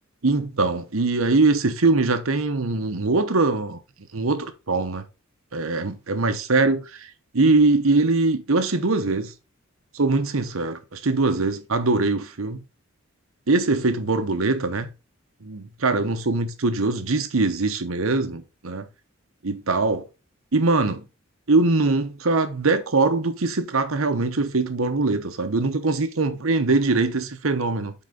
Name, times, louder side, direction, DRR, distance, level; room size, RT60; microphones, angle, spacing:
voice 1, 0.2-3.8 4.1-5.0 5.5-7.1 7.3-9.3 9.9-12.6 13.5-14.9 15.4-18.9 19.4-20.0 20.5-21.0 21.5-27.9, right 3 dB, 80° right, 1.0 m, -22 dB
7.8 x 4.1 x 4.0 m
head